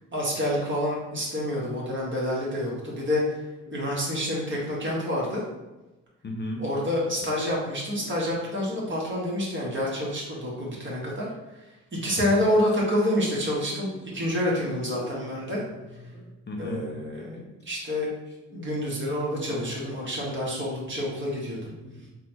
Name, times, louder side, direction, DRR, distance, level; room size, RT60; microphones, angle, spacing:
voice 1, 0.1-3.4 3.7-5.4 6.6-11.3 11.9-15.6 16.6-18.1 18.5-21.7, left 1 dB, 35° right, -4 dB, 1.4 m, -28 dB
voice 2, 6.2-6.6 7.9-8.0 13.1-13.2 14.1-14.2 15.0-15.2 16.0-16.8 17.2-17.4 18.5-18.7 19.2-19.8 20.5-20.6 20.9-21.1 21.6-22.1, left 1 dB, 35° left, 0 dB, 0.7 m, -39 dB
3.7 x 2.4 x 3.0 m, 1.1 s
hypercardioid pair, 50°, 32 cm